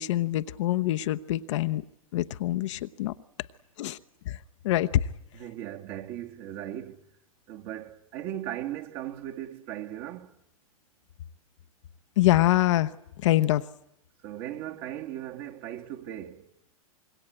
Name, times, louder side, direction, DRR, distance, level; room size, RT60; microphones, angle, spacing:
voice 1, 0.0-1.8 2.1-3.1 3.8-4.0 4.3-4.4 4.6-4.9 12.2-12.9 13.2-13.6, left 15 dB, 55° left, 1.0 m, -25 dB
voice 2, 5.3-7.0 7.5-10.3 14.2-16.5, right 12 dB, 40° right, 2.3 m, -38 dB
26.0 x 22.5 x 9.0 m
hypercardioid pair, 110°, 19 cm